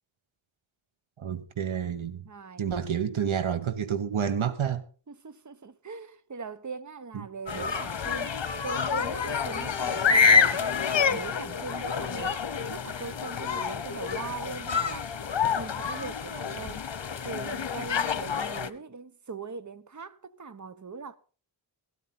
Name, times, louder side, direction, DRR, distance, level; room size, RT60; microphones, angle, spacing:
voice 1, 1.2-2.3 2.6-4.9 7.1-7.3, right 8 dB, 85° right, 1.2 m, -29 dB
voice 2, 2.2-2.7 5.1-8.4 8.6-12.4 12.7-15.1 15.5-16.9 17.2-21.2, right 5 dB, 40° right, 1.0 m, -40 dB
sound 1, 7.5-18.7, left 6 dB, 65° left, 1.1 m, -27 dB
17.0 x 13.0 x 4.3 m
wide cardioid pair, 100°, 47 cm